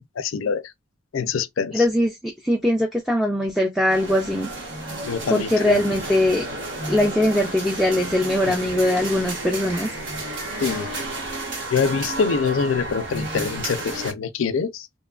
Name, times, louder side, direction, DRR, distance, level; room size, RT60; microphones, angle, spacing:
voice 1, 0.2-0.6 1.1-1.8 5.1-5.8 10.6-10.9 11.7-14.9, left 5 dB, 85° left, 0.4 m, -24 dB
voice 2, 1.7-4.5 5.3-6.5 6.9-9.9, left 1 dB, ahead, 0.3 m, -21 dB
sound 1, 3.9-14.1, right 2 dB, 65° right, 1.1 m, -32 dB
2.9 x 2.2 x 2.3 m
head